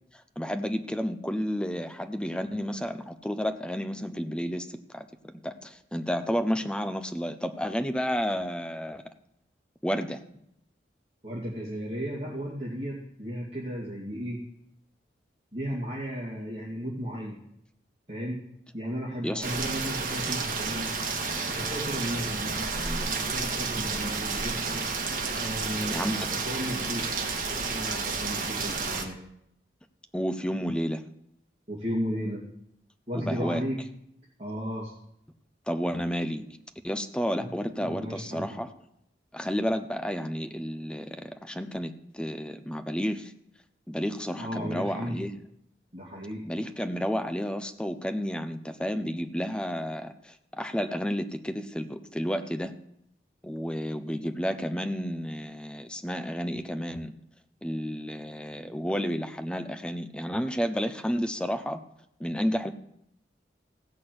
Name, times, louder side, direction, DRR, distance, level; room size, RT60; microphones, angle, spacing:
voice 1, 0.1-9.0 9.8-10.2 19.2-19.5 22.7-23.0 25.9-26.3 30.1-31.0 33.1-33.6 35.7-36.6 36.8-38.7 39.3-43.3 43.9-45.4 46.4-52.7 53.4-57.1 57.6-61.8 62.2-62.7, equal, 5° left, 8 dB, 0.6 m, -31 dB
voice 2, 11.2-14.4 15.5-17.4 18.1-18.4 18.7-21.0 21.5-22.7 23.1-24.9 25.4-27.0 27.5-29.2 31.7-32.4 33.1-33.8 34.4-34.9 37.4-37.5 37.8-38.5 44.4-45.3 45.9-46.4, equal, 35° right, -6 dB, 2.4 m, -34 dB
Rain, 19.4-29.0, right 4 dB, 50° right, 1.7 m, -31 dB
16.0 x 6.1 x 7.8 m, 0.76 s
head